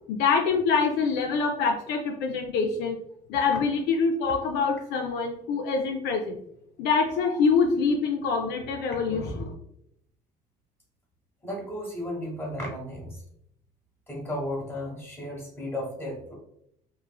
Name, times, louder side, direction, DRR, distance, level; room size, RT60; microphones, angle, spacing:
voice 1, 0.1-3.0 3.3-6.4 6.8-9.5, left 5 dB, 80° left, 3 dB, 0.4 m, -25 dB
voice 2, 11.4-13.2 14.1-16.3, left 1 dB, 15° left, -2 dB, 1.2 m, -34 dB
3.0 x 2.5 x 2.2 m, 0.74 s
cardioid pair, 110°, 17 cm